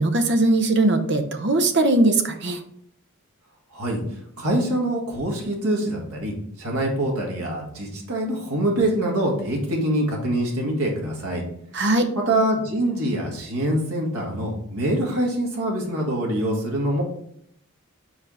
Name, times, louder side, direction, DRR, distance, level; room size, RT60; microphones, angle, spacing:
voice 1, 0.0-2.6 11.7-12.1, right 2 dB, 50° right, 7 dB, 0.7 m, -20 dB
voice 2, 3.7-4.0 4.4-11.4 12.2-17.0, right 1 dB, 80° right, 0 dB, 1.8 m, -24 dB
4.9 x 4.5 x 4.8 m, 0.69 s
head